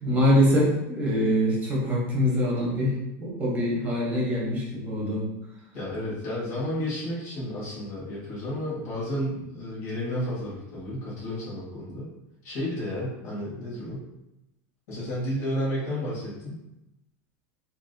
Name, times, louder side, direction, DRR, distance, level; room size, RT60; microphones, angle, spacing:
voice 1, 0.0-2.9 3.2-5.2, equal, 20° right, -3 dB, 0.9 m, -24 dB
voice 2, 5.7-12.1 12.4-14.0 14.9-16.6, equal, 60° left, -7 dB, 1.3 m, -32 dB
2.7 x 2.5 x 2.6 m, 0.91 s
supercardioid pair, 160°, 8 cm